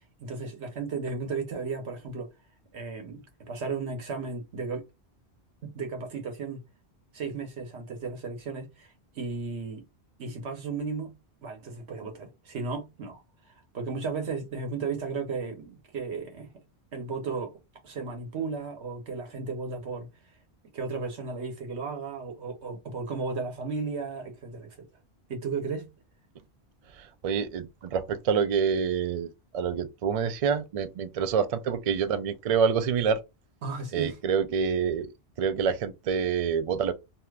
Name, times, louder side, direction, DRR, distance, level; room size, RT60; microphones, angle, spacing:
voice 1, 0.0-2.3 2.7-4.8 5.6-6.6 7.1-8.9 9.1-9.8 10.2-13.2 13.7-16.5 16.9-17.6 17.8-20.1 20.7-24.8 25.3-25.9 33.6-34.2, right 4 dB, 80° right, 1.2 m, -34 dB
voice 2, 27.0-29.3 29.5-33.2 33.9-35.1 35.4-36.9, right 6 dB, 65° right, 0.3 m, -27 dB
2.7 x 2.4 x 3.2 m
omnidirectional pair, 1.1 m